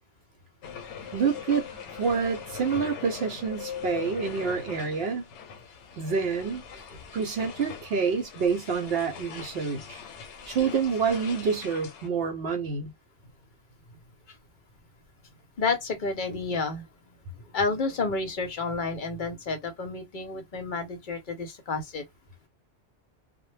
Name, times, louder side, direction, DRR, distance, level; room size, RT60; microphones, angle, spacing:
sound 1, 0.6-12.1, left 7 dB, 90° left, 0.9 m, -41 dB
voice 1, 1.1-1.7 2.0-5.2 6.0-6.6 7.1-10.0 10.5-12.9, right 5 dB, 65° right, 0.7 m, -27 dB
voice 2, 15.6-16.8 17.5-22.0, left 4 dB, 50° left, 0.7 m, -30 dB
2.1 x 2.0 x 3.1 m
omnidirectional pair, 1.2 m